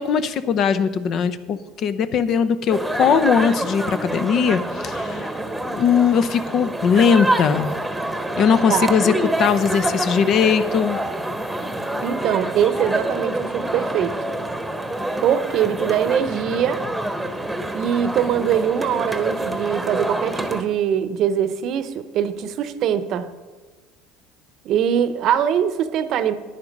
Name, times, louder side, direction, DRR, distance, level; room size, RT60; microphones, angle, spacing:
voice 1, 0.0-5.3 5.7-7.7 8.4-9.1 9.4-11.0, left 7 dB, 50° left, 13 dB, 0.7 m, -19 dB
sound 1, 2.7-20.6, right 1 dB, 5° right, 1.2 m, -27 dB
voice 2, 12.0-14.1 15.2-16.8 17.7-23.3 24.6-26.3, right 9 dB, 55° right, 12 dB, 0.8 m, -22 dB
11.0 x 9.7 x 5.3 m, 1.4 s
supercardioid pair, 110°, 0 cm